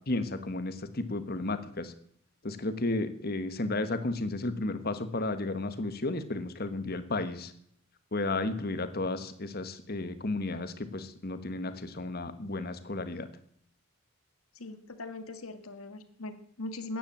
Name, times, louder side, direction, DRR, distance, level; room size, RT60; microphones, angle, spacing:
voice 1, 0.1-1.9 2.4-7.5 8.1-13.3, left 2 dB, 45° left, 11 dB, 1.4 m, -33 dB
voice 2, 14.6-17.0, left 2 dB, 80° left, 10 dB, 1.7 m, -40 dB
14.5 x 10.0 x 7.4 m, 0.67 s
head